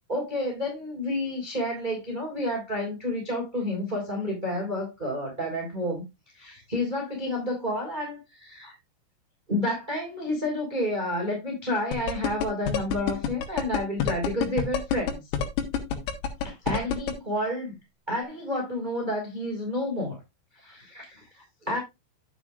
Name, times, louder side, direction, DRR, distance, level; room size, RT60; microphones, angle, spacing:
voice 1, 0.1-6.0 6.3-8.7 9.5-15.2 16.4-17.8 18.1-20.2 20.6-21.8, left 1 dB, 10° right, 4.0 m, -30 dB
sound 1, 11.9-17.1, left 8 dB, 90° left, 4.2 m, -26 dB
11.5 x 8.7 x 2.5 m
omnidirectional pair, 5.7 m